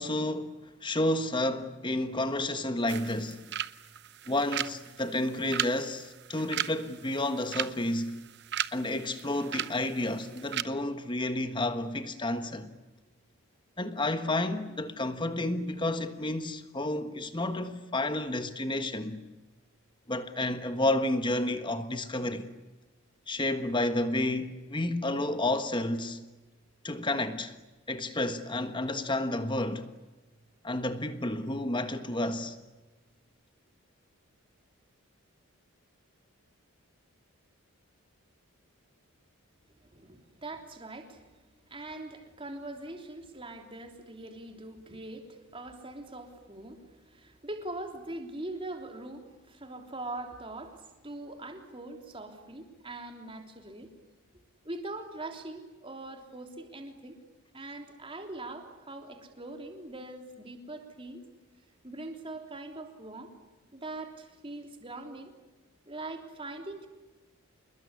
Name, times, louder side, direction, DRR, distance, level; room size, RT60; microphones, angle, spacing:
voice 1, 0.0-3.4 4.3-8.2 8.7-12.7 13.8-19.2 20.1-22.5 23.3-26.2 26.8-27.5 27.9-29.9 30.6-32.6, left 1 dB, 20° left, 1.4 m, -31 dB
sound 1, 2.9-10.6, right 11 dB, 50° right, 0.8 m, -37 dB
voice 2, 39.6-41.2 41.7-53.9 54.6-57.2 57.5-61.2 61.8-63.3 63.7-65.3 65.9-66.9, right 2 dB, 25° right, 3.4 m, -42 dB
27.5 x 21.5 x 9.8 m
head